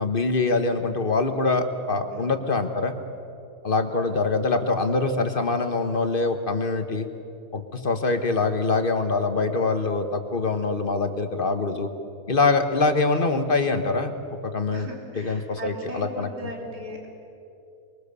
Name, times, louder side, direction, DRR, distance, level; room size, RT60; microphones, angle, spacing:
voice 1, 0.0-2.9 3.6-7.1 7.5-11.9 12.3-14.1 14.4-14.9 15.1-16.3, left 3 dB, 35° left, 7 dB, 1.4 m, -24 dB
voice 2, 14.7-17.1, equal, 80° right, 0 dB, 3.6 m, -38 dB
24.5 x 22.5 x 6.9 m, 2.7 s
omnidirectional pair, 1.7 m